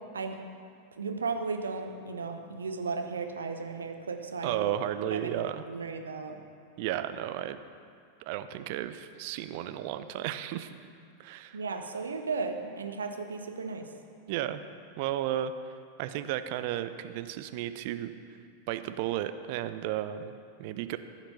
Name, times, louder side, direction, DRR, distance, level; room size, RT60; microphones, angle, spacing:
voice 1, 1.0-4.7 5.1-6.4 11.5-13.9, right 4 dB, 70° right, 5 dB, 0.9 m, -35 dB
voice 2, 4.4-5.6 6.8-7.6 8.2-10.7 11.2-11.6 14.3-14.6 15.0-18.1 18.7-21.0, right 12 dB, 45° right, 11 dB, 0.5 m, -33 dB
14.5 x 6.0 x 5.6 m, 2.3 s
figure-of-eight pair, 90°, 0 cm